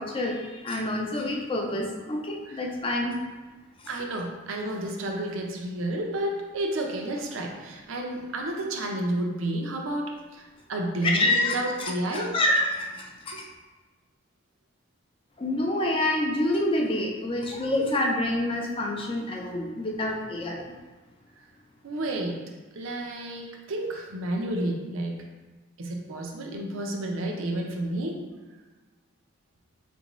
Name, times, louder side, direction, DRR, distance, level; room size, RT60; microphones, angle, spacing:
voice 1, 0.0-3.2 11.0-13.5 15.4-20.6, left 1 dB, 25° left, 1 dB, 0.4 m, -27 dB
voice 2, 3.9-12.3 21.8-22.4 22.7-25.2 25.8-28.1, right 1 dB, 75° right, 1 dB, 0.6 m, -31 dB
4.3 x 2.6 x 3.0 m, 1.2 s
head